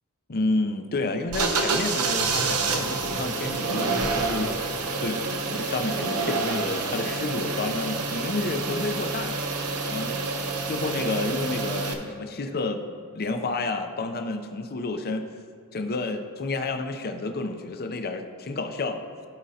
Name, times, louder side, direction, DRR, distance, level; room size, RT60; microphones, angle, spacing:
voice 1, 0.3-9.4 9.8-12.8 13.2-15.3 15.7-19.0, left 2 dB, 45° left, 6 dB, 0.6 m, -30 dB
sound 1, 1.3-11.9, right 3 dB, 85° right, 0.9 m, -28 dB
15.0 x 5.2 x 2.8 m, 2.3 s
head